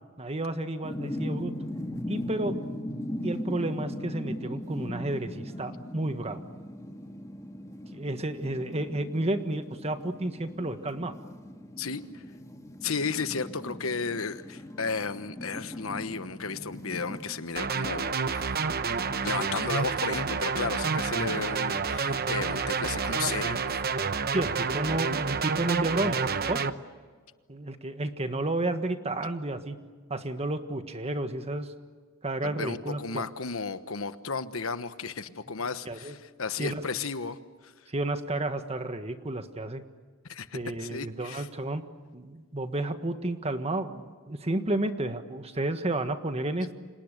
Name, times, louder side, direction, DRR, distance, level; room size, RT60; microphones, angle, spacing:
voice 1, 0.2-1.5 2.1-2.8 3.2-6.4 7.9-11.1 24.3-26.6 27.5-29.8 30.1-31.7 32.2-33.2 35.8-36.1 36.6-36.8 37.9-39.8 40.5-41.8 42.1-46.7, right 2 dB, 30° right, 8 dB, 1.6 m, -31 dB
sound 1, 0.8-17.3, left 1 dB, 15° left, 2.3 m, -39 dB
voice 2, 11.8-12.2 12.8-18.7 19.2-23.7 32.4-37.4 37.6-37.7 40.3-41.5, left 4 dB, 75° left, 11 dB, 1.2 m, -34 dB
sound 2, 17.6-26.7, right 5 dB, 45° right, 0.9 m, -29 dB
30.0 x 26.5 x 6.8 m, 1.5 s
head